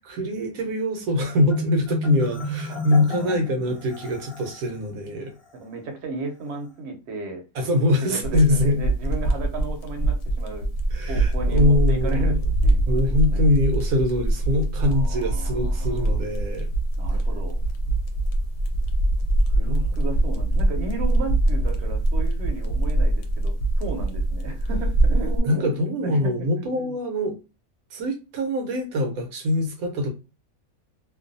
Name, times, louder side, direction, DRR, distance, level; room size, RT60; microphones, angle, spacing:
voice 1, 0.0-5.3 7.5-8.8 10.9-12.4 12.9-16.7 19.7-19.9 25.4-27.4 27.9-30.1, left 1 dB, 75° right, 1.0 m, -23 dB
Marimba xylophone, 1.4-4.7, equal, 30° left, 0.8 m, -32 dB
voice 2, 2.7-3.3 5.5-7.4 8.0-10.7 11.1-12.4 12.6-13.6 14.9-16.2 17.0-17.6 19.5-27.0, right 3 dB, 60° right, 0.8 m, -35 dB
sound 1, 8.2-25.4, right 1 dB, 70° left, 0.9 m, -23 dB
2.5 x 2.2 x 2.5 m
omnidirectional pair, 1.5 m